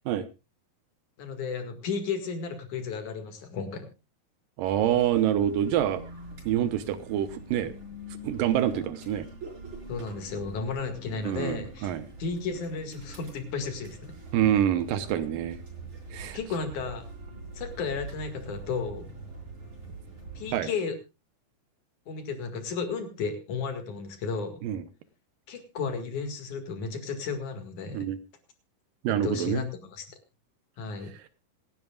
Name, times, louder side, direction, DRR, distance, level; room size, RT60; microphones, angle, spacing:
voice 1, 1.2-3.9 9.9-11.9 12.2-14.1 16.3-17.0 17.5-19.1 20.4-21.0 22.1-24.6 25.5-28.1 29.1-30.0 30.8-31.1, left 5 dB, 60° left, 7 dB, 3.2 m, -33 dB
sound 1, 4.6-20.6, right 2 dB, 35° right, 5.6 m, -44 dB
voice 2, 4.6-6.0 6.5-7.7 8.2-9.3 11.3-12.0 14.3-15.6 16.1-16.4 20.5-20.7 24.6-24.8 27.9-28.2 29.0-29.7, right 11 dB, 75° right, 13 dB, 2.4 m, -26 dB
26.0 x 11.0 x 2.3 m, 0.27 s
omnidirectional pair, 4.2 m